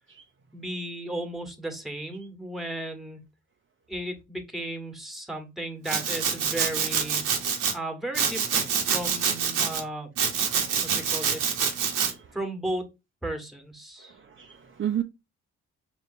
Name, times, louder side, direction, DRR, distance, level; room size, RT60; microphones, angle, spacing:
voice 1, 0.5-3.2 3.9-10.1 10.8-11.6 12.3-12.9 13.2-14.2, right 1 dB, ahead, 1.4 m, -35 dB
Domestic sounds home sounds, 5.9-7.7 8.1-9.8 10.2-12.1, right 7 dB, 80° right, 1.0 m, -26 dB
voice 2, 11.9-12.3 14.1-15.0, right 10 dB, 40° right, 0.6 m, -33 dB
5.1 x 2.9 x 2.7 m
supercardioid pair, 55°, 33 cm